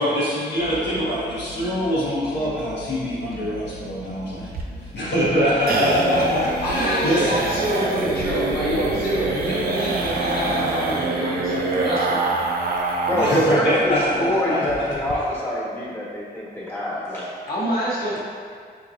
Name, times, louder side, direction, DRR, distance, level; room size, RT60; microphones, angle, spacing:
voice 1, 0.0-4.5 4.9-7.5 13.1-14.6, equal, 90° left, -9 dB, 1.1 m, -23 dB
sound 1, 0.6-11.0, right 1 dB, 35° left, 0.5 m, -40 dB
sound 2, 4.5-13.6 13.9-14.0 14.3-14.4 14.7-15.1, right 3 dB, 60° right, 0.5 m, -25 dB
voice 2, 5.4-12.5 17.5-18.2, equal, 65° left, -8 dB, 1.0 m, -27 dB
voice 3, 13.0-17.3, left 1 dB, 15° left, -8 dB, 1.3 m, -26 dB
4.5 x 2.9 x 2.5 m, 2.2 s
cardioid pair, 65°, 17 cm